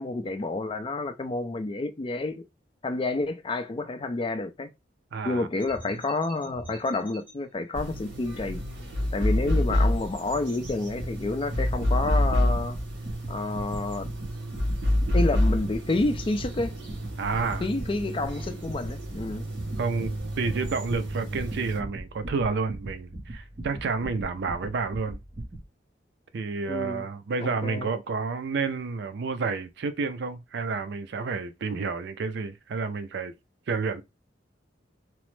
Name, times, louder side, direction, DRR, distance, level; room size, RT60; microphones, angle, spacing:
voice 1, 0.0-2.4 2.8-4.7 5.2-8.6 9.1-12.8 13.3-14.1 15.1-16.7 17.6-19.4 26.7-27.0 27.4-27.9, left 2 dB, 30° left, 0.4 m, -29 dB
voice 2, 5.1-5.5 17.2-17.7 19.8-25.2 26.3-33.3 33.7-34.0, right 4 dB, 65° right, 0.4 m, -30 dB
sound 1, 5.6-7.3 8.2-9.2, right 1 dB, 10° right, 1.1 m, -44 dB
sound 2, 7.7-21.8, left 1 dB, 85° right, 1.1 m, -29 dB
sound 3, 10.6-25.7, right 1 dB, 35° right, 0.7 m, -40 dB
2.9 x 2.0 x 3.1 m
head